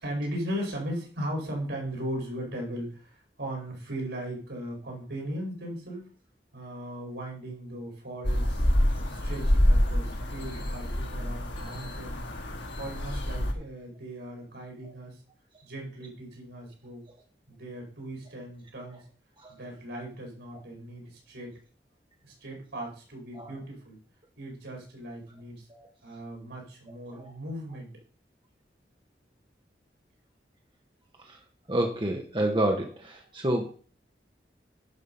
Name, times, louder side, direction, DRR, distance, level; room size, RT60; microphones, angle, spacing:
voice 1, 0.0-6.1 6.5-8.7 9.1-12.2 12.8-15.2 15.6-17.0 17.5-19.0 19.5-21.6 22.2-24.0 24.4-25.6 26.0-27.9, right 1 dB, 85° right, 0 dB, 5.0 m, -38 dB
sound 1, 8.2-13.5, equal, 90° left, 1.7 m, -27 dB
voice 2, 31.7-33.7, right 1 dB, 25° right, 2 dB, 1.3 m, -29 dB
10.5 x 5.2 x 5.6 m, 0.41 s
head